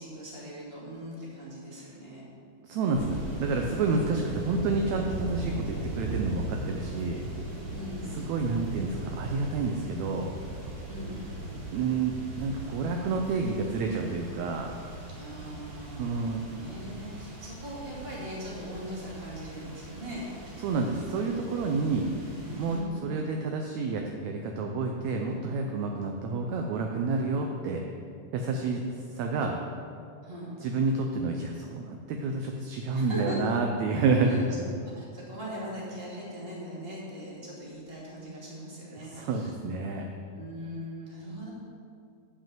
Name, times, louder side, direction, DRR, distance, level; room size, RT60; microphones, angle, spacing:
voice 1, 0.0-2.2 7.7-8.2 10.9-11.2 15.2-20.3 21.8-23.0 30.2-30.6 32.9-33.6 34.2-39.5 40.3-41.5, equal, 20° right, -6 dB, 2.5 m, -40 dB
voice 2, 2.6-7.2 8.2-10.3 11.7-14.7 16.0-16.4 20.6-22.1 22.5-27.8 28.3-28.8 29.2-29.6 30.6-34.4 39.0-40.1, right 4 dB, 75° right, 2 dB, 1.8 m, -29 dB
sound 1, 2.9-22.8, right 1 dB, 40° right, 2.8 m, -38 dB
11.0 x 5.3 x 7.4 m, 2.4 s
omnidirectional pair, 3.6 m